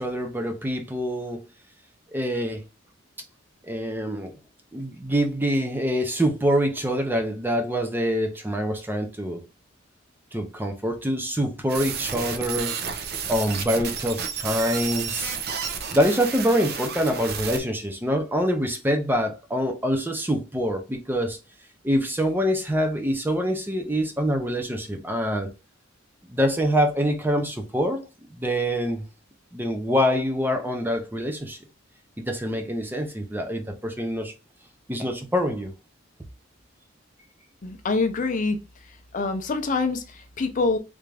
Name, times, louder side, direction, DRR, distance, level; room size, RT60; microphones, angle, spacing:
voice 1, 0.0-1.4 2.1-2.6 3.6-4.3 4.7-9.4 10.3-12.9 13.3-15.4 15.9-21.4 21.8-25.5 26.3-28.0 28.3-29.0 29.5-31.6 32.2-34.3 34.9-35.7, equal, 10° right, 0.5 m, -25 dB
sound 1, 11.7-17.6, right 6 dB, 55° right, 0.6 m, -31 dB
voice 2, 37.6-38.6 39.1-40.0 40.4-40.8, left 3 dB, 40° left, 0.5 m, -24 dB
3.3 x 2.5 x 3.2 m
head